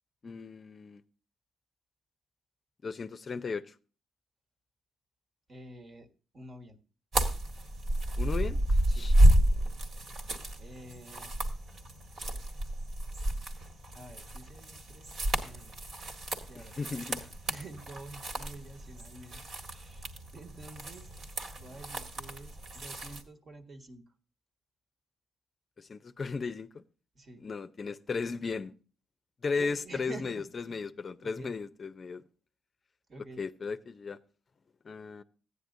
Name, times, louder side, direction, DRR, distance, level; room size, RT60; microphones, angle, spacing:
voice 1, 0.2-1.0 2.8-3.7 8.2-9.1 16.6-17.2 25.8-26.8 27.4-28.7 29.4-32.2 33.4-34.2 34.8-35.2, left 4 dB, 40° left, 0.5 m, -36 dB
voice 2, 5.5-6.1 6.3-6.8 8.9-9.1 10.5-11.4 13.9-15.8 16.5-17.1 17.5-21.1 21.6-24.0 27.1-27.4 29.6-30.8 31.2-31.5 33.1-33.4, right 2 dB, 40° right, 1.4 m, -48 dB
sound 1, 7.1-23.2, right 1 dB, 60° right, 1.8 m, -30 dB
14.5 x 9.8 x 2.6 m
cardioid pair, 90°, 0 cm